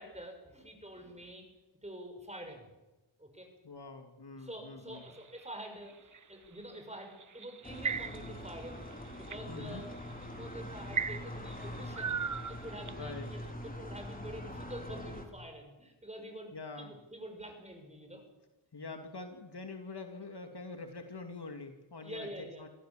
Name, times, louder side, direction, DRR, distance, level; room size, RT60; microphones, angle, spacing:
voice 1, 0.0-1.5 1.8-2.7 3.2-3.5 4.4-5.9 6.3-8.9 9.2-9.9 10.2-12.2 12.5-18.2 22.0-22.6, right 1 dB, 15° right, 4 dB, 6.7 m, -47 dB
voice 2, 3.6-5.0 9.5-9.8 13.0-13.3 16.5-17.0 18.7-22.7, left 3 dB, 55° left, 5 dB, 2.6 m, -45 dB
sound 1, 5.0-6.2 7.2-8.5 8.9-9.4 10.1-10.2 10.9-13.1, right 6 dB, 40° right, 0.9 m, -37 dB
sound 2, 7.6-15.3, left 1 dB, 15° left, 3.9 m, -43 dB
25.0 x 16.5 x 7.5 m, 1.1 s
wide cardioid pair, 70°, 49 cm